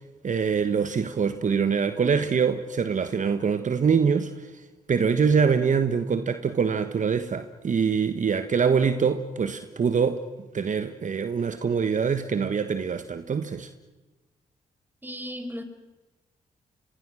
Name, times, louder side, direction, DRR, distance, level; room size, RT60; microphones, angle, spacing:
voice 1, 0.2-4.5 4.9-10.2 10.5-13.7, right 6 dB, 55° right, 1.3 m, -24 dB
voice 2, 15.0-15.6, equal, 10° right, 4.6 m, -35 dB
30.0 x 24.5 x 6.3 m
supercardioid pair, 55°, 16 cm